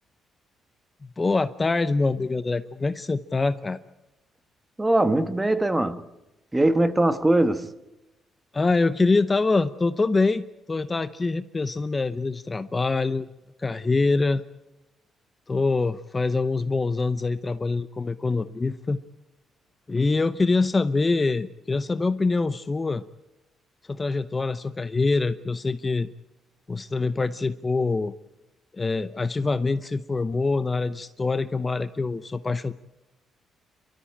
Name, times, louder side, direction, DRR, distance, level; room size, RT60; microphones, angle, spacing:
voice 1, 1.2-3.8 8.5-13.3 13.6-14.4 15.5-19.0 19.9-23.0 23.9-26.1 26.7-28.1 28.7-32.7, left 3 dB, 25° left, 0.7 m, -24 dB
voice 2, 4.8-6.0 6.5-7.7, right 1 dB, 15° right, 1.3 m, -21 dB
29.5 x 13.0 x 8.9 m
cardioid pair, 90°, 0 cm